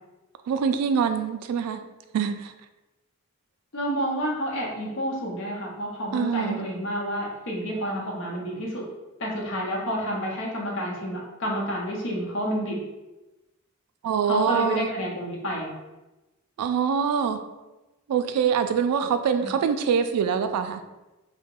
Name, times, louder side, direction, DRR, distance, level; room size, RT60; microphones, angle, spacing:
voice 1, 0.5-1.8 2.1-2.5 6.1-6.7 14.0-14.9 16.6-17.4 18.1-20.8, right 7 dB, 90° right, 10 dB, 0.3 m, -24 dB
voice 2, 3.7-8.8 9.2-12.8 14.3-15.7 19.4-19.5, equal, 60° left, -2 dB, 0.8 m, -29 dB
2.8 x 2.1 x 3.7 m, 1.1 s
head